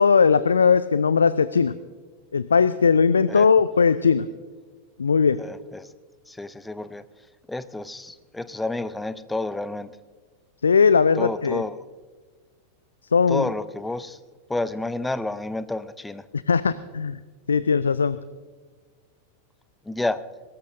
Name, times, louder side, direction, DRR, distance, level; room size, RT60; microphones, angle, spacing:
voice 1, 0.0-1.7 2.3-4.3 5.0-5.4 10.6-11.6 13.1-13.5 16.3-17.2 17.5-18.2, left 5 dB, 75° left, 16 dB, 0.4 m, -19 dB
voice 2, 5.4-5.9 6.3-7.0 7.5-10.0 11.2-11.8 13.3-14.2 14.5-16.3 19.9-20.2, left 2 dB, 5° left, 14 dB, 0.6 m, -30 dB
22.0 x 18.0 x 2.6 m, 1.4 s
figure-of-eight pair, 90°, 0 cm